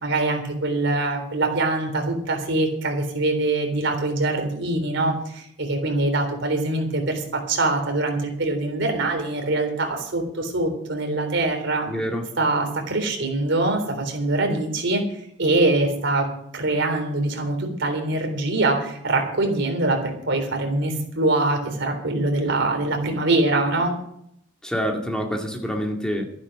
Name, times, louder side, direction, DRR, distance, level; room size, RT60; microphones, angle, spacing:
voice 1, 0.0-11.9 12.4-15.0 15.4-24.0, right 2 dB, 70° right, 4 dB, 3.7 m, -23 dB
voice 2, 11.9-12.2 24.6-26.2, equal, 5° left, 2 dB, 2.3 m, -26 dB
13.0 x 10.5 x 6.4 m, 0.71 s
head